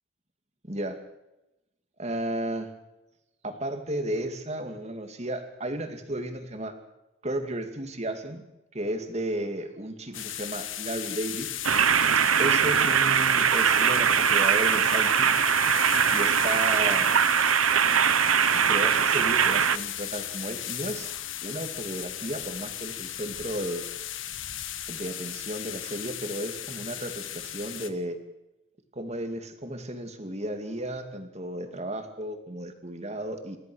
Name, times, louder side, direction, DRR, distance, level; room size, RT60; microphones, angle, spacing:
voice 1, 0.6-1.0 2.0-2.7 3.4-6.7 7.2-8.4 8.7-11.5 12.4-15.3 16.1-17.1 18.5-21.1 21.4-23.8 24.9-28.2 29.0-33.6, right 1 dB, 30° right, 6 dB, 2.5 m, -33 dB
sound 1, 10.1-27.9, left 11 dB, 70° left, 1.5 m, -36 dB
sound 2, 11.6-19.8, right 8 dB, 85° right, 0.9 m, -22 dB
29.5 x 15.0 x 6.4 m, 0.93 s
head